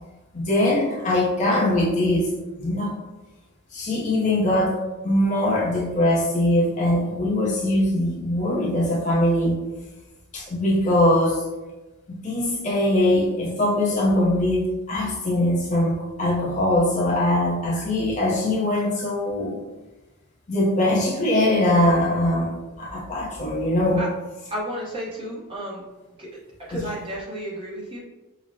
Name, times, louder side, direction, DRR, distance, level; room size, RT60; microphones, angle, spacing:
voice 1, 0.3-2.3 2.6-2.9 3.7-9.6 10.3-11.4 12.1-19.6 20.5-24.0 26.7-26.9, left 1 dB, 35° left, -4 dB, 0.6 m, -22 dB
voice 2, 24.5-25.8 26.2-26.3 26.7-28.0, equal, 25° right, -6 dB, 1.0 m, -32 dB
4.9 x 2.1 x 2.7 m, 1.1 s
head